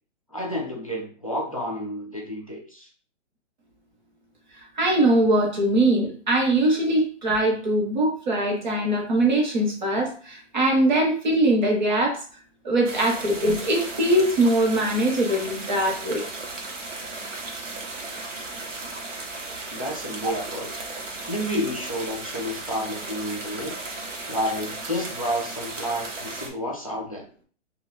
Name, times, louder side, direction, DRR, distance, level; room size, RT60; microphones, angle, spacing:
voice 1, 0.3-2.9 19.7-20.8 21.3-23.8 24.3-27.3, equal, 30° left, -1 dB, 0.4 m, -30 dB
voice 2, 4.8-12.2 12.6-16.2, right 1 dB, 40° right, 0 dB, 0.9 m, -22 dB
sound 1, 12.8-26.5, right 3 dB, 80° right, 1.0 m, -35 dB
2.7 x 2.3 x 3.8 m, 0.43 s
hypercardioid pair, 180°, 37 cm